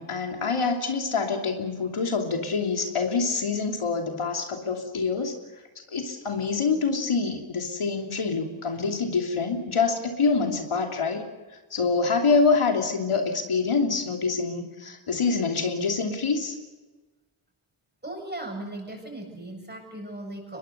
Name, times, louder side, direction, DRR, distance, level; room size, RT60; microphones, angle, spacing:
voice 1, 0.0-5.4 5.9-11.2 11.7-16.6, left 4 dB, 85° left, 3 dB, 3.0 m, -26 dB
voice 2, 18.0-20.6, right 1 dB, 20° right, 2 dB, 7.7 m, -37 dB
24.5 x 21.0 x 6.8 m, 1.2 s
wide cardioid pair, 65°, 49 cm